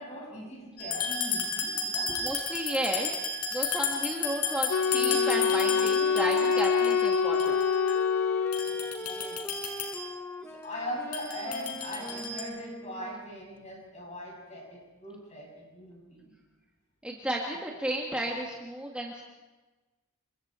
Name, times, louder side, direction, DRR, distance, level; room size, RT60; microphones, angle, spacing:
voice 1, 0.0-2.3 8.6-9.4 10.5-16.3, left 1 dB, 30° left, -1 dB, 7.9 m, -40 dB
sound 1, 0.8-8.1 8.5-10.1 11.1-12.4, left 5 dB, 80° left, 6.5 m, -33 dB
voice 2, 2.2-3.2 3.5-7.6 17.0-19.2, right 1 dB, 5° right, -2 dB, 1.9 m, -33 dB
Wind instrument woodwind instrument, 4.7-9.1, left 6 dB, 65° left, 0.6 m, -26 dB
Wind instrument woodwind instrument 2, 4.9-13.3, equal, 10° left, 0.8 m, -42 dB
27.5 x 24.5 x 4.5 m, 1.2 s
head